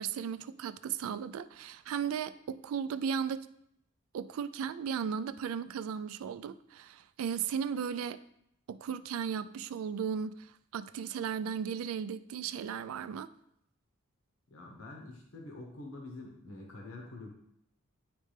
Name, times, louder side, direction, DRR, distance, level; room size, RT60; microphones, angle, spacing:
voice 1, 0.0-3.5 4.1-8.2 8.7-10.5 10.7-13.3, right 7 dB, 80° right, 14 dB, 0.3 m, -36 dB
voice 2, 14.5-17.3, left 2 dB, 75° left, 0 dB, 1.0 m, -46 dB
9.7 x 3.2 x 3.3 m, 0.75 s
head